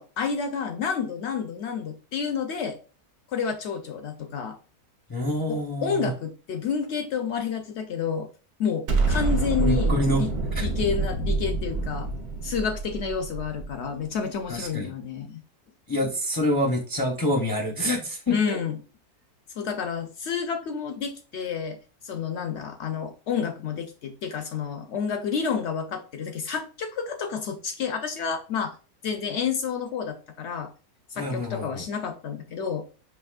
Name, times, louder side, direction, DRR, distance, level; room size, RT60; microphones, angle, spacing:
voice 1, 0.0-2.8 3.3-4.6 5.5-8.3 8.6-10.3 10.6-12.1 12.4-15.4 18.3-18.8 19.6-21.8 22.0-28.8 29.0-30.7 31.1-32.8, left 6 dB, 70° left, 6 dB, 0.6 m, -30 dB
voice 2, 5.1-6.1 9.6-10.2 10.6-10.7 14.5-14.9 15.9-18.6 31.1-31.8, left 1 dB, 30° left, -1 dB, 0.4 m, -26 dB
Explosion, 8.9-14.0, right 3 dB, 80° right, 1.4 m, -27 dB
5.9 x 2.6 x 2.4 m, 0.35 s
omnidirectional pair, 1.6 m